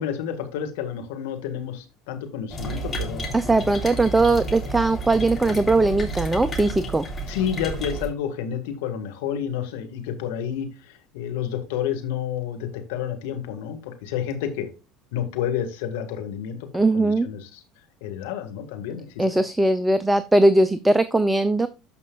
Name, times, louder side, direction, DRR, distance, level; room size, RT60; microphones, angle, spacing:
voice 1, 0.0-3.2 7.3-14.7 15.1-17.6 18.0-19.4, left 9 dB, 75° left, 6 dB, 1.9 m, -30 dB
sound 1, 2.5-8.1, right 2 dB, 30° left, 3.3 m, -31 dB
voice 2, 3.3-7.1 16.7-17.3 19.2-21.7, right 2 dB, 10° right, 13 dB, 0.7 m, -20 dB
13.5 x 5.5 x 2.5 m, 0.27 s
hypercardioid pair, 80°, 0 cm